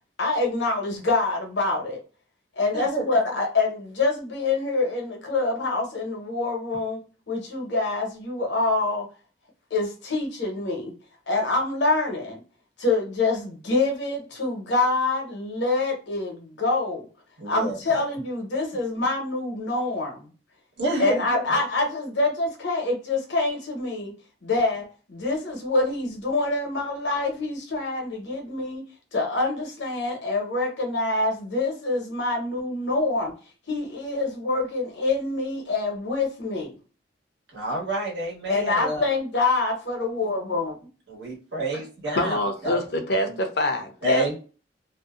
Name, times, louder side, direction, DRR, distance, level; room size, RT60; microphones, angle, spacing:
voice 1, 0.2-2.0 2.5-7.0 7.3-9.1 9.7-10.9 11.3-12.4 12.8-17.1 17.4-20.3 21.0-24.1 24.4-28.8 29.1-33.3 33.7-36.7 38.5-40.7, left 3 dB, 85° left, 1 dB, 0.9 m, -26 dB
voice 2, 2.7-3.0 17.4-17.8 20.8-21.2 37.5-39.0 41.1-42.8 43.3-43.4 44.0-44.3, right 1 dB, 75° right, -2 dB, 1.2 m, -28 dB
voice 3, 42.1-44.2, left 1 dB, 65° left, 5 dB, 0.6 m, -25 dB
2.6 x 2.1 x 2.3 m, 0.36 s
head